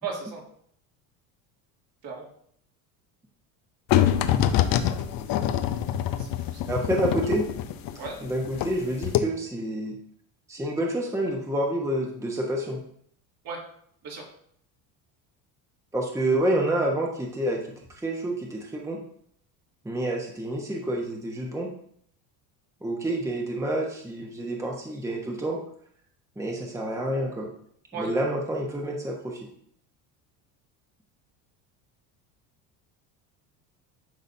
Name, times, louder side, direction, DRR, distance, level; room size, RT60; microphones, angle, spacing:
voice 1, 0.0-0.4 2.0-2.3 6.1-6.6 8.0-8.2 13.4-13.6 14.0-14.2 27.9-28.1, right 5 dB, 55° right, -2 dB, 2.6 m, -35 dB
sound 1, 3.9-8.8 9.0-9.2, left 11 dB, 50° left, 0.7 m, -24 dB
voice 2, 6.7-7.5 8.2-10.0 10.5-12.8 15.9-17.6 18.0-19.0 19.8-21.7 22.8-25.6 26.4-27.5 28.0-29.4, right 1 dB, 5° right, -1 dB, 1.1 m, -28 dB
11.0 x 4.0 x 2.7 m, 0.65 s
supercardioid pair, 90°, 43 cm